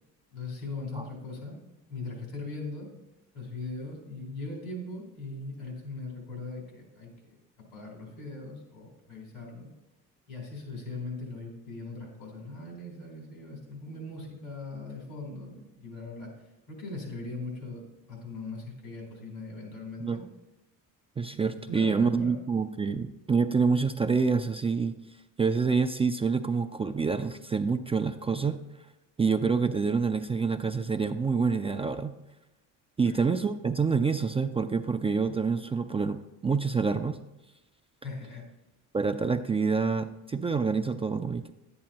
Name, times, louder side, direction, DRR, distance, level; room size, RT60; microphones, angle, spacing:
voice 1, 0.3-1.6 1.9-2.9 3.3-7.3 7.7-9.7 10.3-16.3 16.7-20.2 21.7-22.4 33.0-33.2 38.0-38.5, left 3 dB, 85° left, 0 dB, 3.6 m, -40 dB
voice 2, 21.2-25.0 25.4-28.6 29.2-32.1 33.0-37.2 38.9-41.5, right 5 dB, 15° right, 8 dB, 0.3 m, -27 dB
10.5 x 8.6 x 2.9 m, 0.96 s
supercardioid pair, 80°, 37 cm